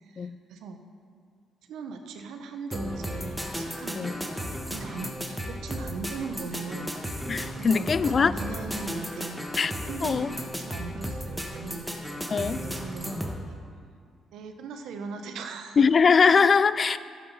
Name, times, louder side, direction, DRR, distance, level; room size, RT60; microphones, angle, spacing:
voice 1, 0.0-0.8 1.7-7.0 7.5-9.4 9.9-11.9 12.3-13.3 14.3-15.8, right 4 dB, 80° right, 6 dB, 1.0 m, -39 dB
sound 1, 2.7-13.4, equal, ahead, 1.3 m, -34 dB
voice 2, 7.3-8.3 9.6-9.7 10.0-10.3 12.3-12.6 15.8-17.0, left 5 dB, 40° left, 16 dB, 0.3 m, -21 dB
11.0 x 7.8 x 5.5 m, 2.2 s
cardioid pair, 90°, 0 cm